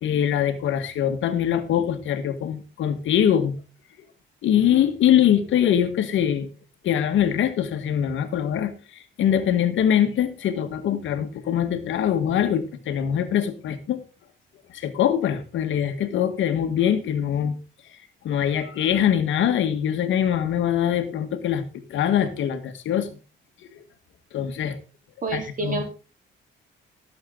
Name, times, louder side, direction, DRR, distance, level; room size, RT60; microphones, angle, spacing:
voice 1, 0.0-3.6 4.4-6.5 6.8-8.7 9.2-14.0 14.7-17.6 18.2-21.6 21.9-23.1 24.3-24.8 25.3-25.8, left 9 dB, 75° left, 1.7 m, -23 dB
voice 2, 25.2-25.8, right 3 dB, 45° right, 3.7 m, -28 dB
16.5 x 7.9 x 3.9 m
cardioid pair, 90°, 20 cm